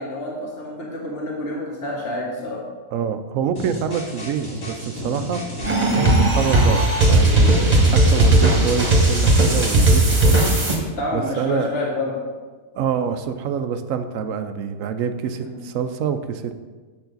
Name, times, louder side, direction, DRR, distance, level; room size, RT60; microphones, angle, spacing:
voice 1, 0.0-2.6 11.0-12.2 15.4-15.6, left 2 dB, 45° left, -4 dB, 1.8 m, -28 dB
voice 2, 2.9-5.4 5.9-10.5 11.1-11.7 12.8-16.5, right 7 dB, 75° right, 9 dB, 0.9 m, -26 dB
sound 1, 3.6-9.2, equal, 75° left, 2.6 m, -33 dB
sound 2, 5.6-10.8, right 1 dB, 30° right, 1.5 m, -16 dB
7.8 x 6.9 x 3.9 m, 1.3 s
omnidirectional pair, 1.5 m